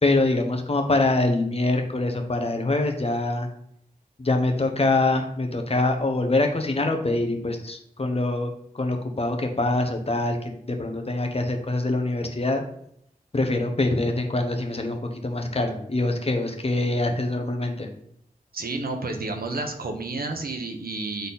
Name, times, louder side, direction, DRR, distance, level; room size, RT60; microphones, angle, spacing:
voice 1, 0.0-3.5 4.2-8.5 8.7-12.6 13.3-17.9, left 2 dB, 40° left, 4 dB, 1.1 m, -24 dB
voice 2, 18.5-21.3, right 3 dB, 75° right, 4 dB, 1.1 m, -30 dB
8.1 x 3.9 x 4.1 m, 0.71 s
wide cardioid pair, 95°, 16 cm